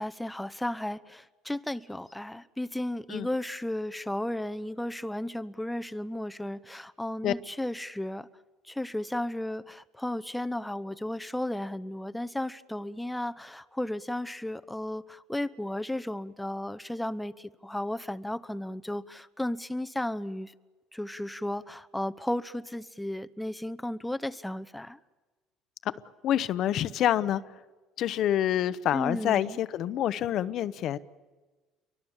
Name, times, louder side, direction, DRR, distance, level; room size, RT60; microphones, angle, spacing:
voice 1, 0.0-8.3 8.6-20.5 20.9-25.0 28.9-29.6, left 1 dB, 5° left, 0.8 m, -34 dB
voice 2, 26.2-27.4 28.0-31.0, left 11 dB, 60° left, 0.9 m, -27 dB
29.0 x 23.5 x 7.3 m
supercardioid pair, 90°, 0 cm